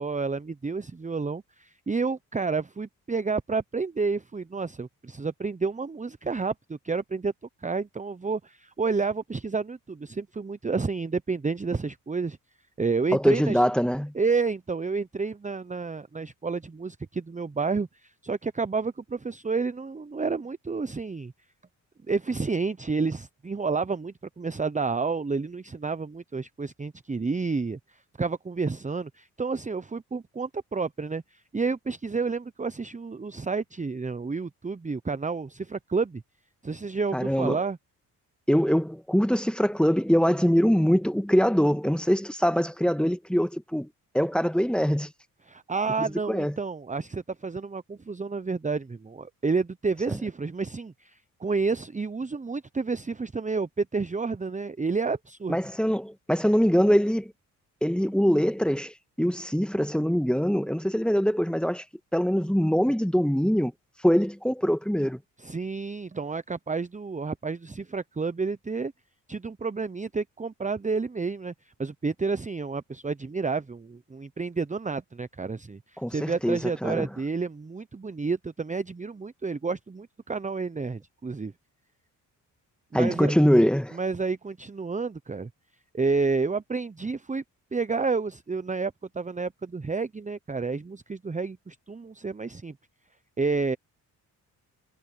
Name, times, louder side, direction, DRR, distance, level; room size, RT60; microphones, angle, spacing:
voice 1, 0.0-7.3 7.6-12.4 12.8-13.6 14.1-21.3 22.1-27.8 28.2-36.2 36.6-37.8 45.5-55.6 65.4-68.9 69.3-71.5 71.8-81.5 82.9-83.3 83.9-85.5 85.9-87.4 87.7-92.8 93.4-93.8, right 4 dB, 15° right, 0.9 m, -30 dB
voice 2, 13.1-14.1 37.1-37.6 38.5-43.9 44.1-45.1 46.0-46.5 55.5-57.3 57.8-61.8 62.1-63.7 64.0-65.2 76.0-77.1 82.9-84.0, equal, ahead, 1.7 m, -23 dB
hypercardioid pair, 50°, 42 cm